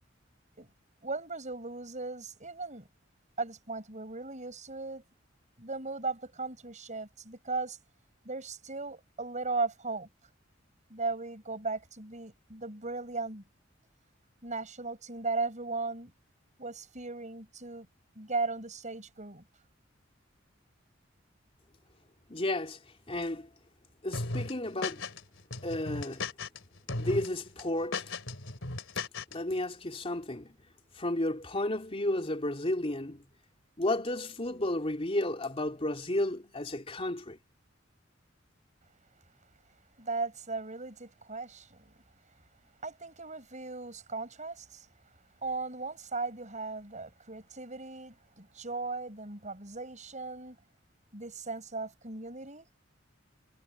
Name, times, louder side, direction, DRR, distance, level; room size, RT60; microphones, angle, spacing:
voice 1, 1.0-2.9 3.4-5.0 5.6-7.8 8.2-10.1 10.9-13.4 14.4-16.1 16.6-17.9 18.1-19.4 40.0-41.9 42.8-44.9 45.4-50.6 51.1-52.7, right 3 dB, 40° right, 6.8 m, -37 dB
voice 2, 22.3-22.8 23.1-23.5 24.0-25.1 25.6-26.3 26.9-28.1 29.3-30.6 30.9-33.2 33.8-37.4, left 1 dB, 30° left, 3.2 m, -32 dB
sound 1, 24.1-25.2 25.5-26.6 26.9-27.3 27.6-29.3, left 3 dB, 85° left, 3.1 m, -36 dB
head